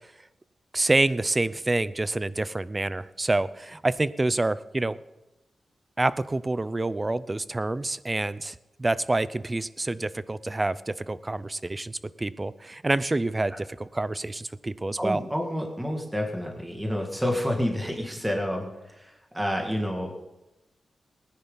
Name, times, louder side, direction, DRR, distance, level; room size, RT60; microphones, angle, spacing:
voice 1, 0.7-5.0 6.0-15.2, right 2 dB, 25° right, 17 dB, 0.5 m, -27 dB
voice 2, 15.0-20.1, equal, 10° right, 1 dB, 2.2 m, -29 dB
19.5 x 10.5 x 4.0 m, 1.0 s
cardioid pair, 75°, 0 cm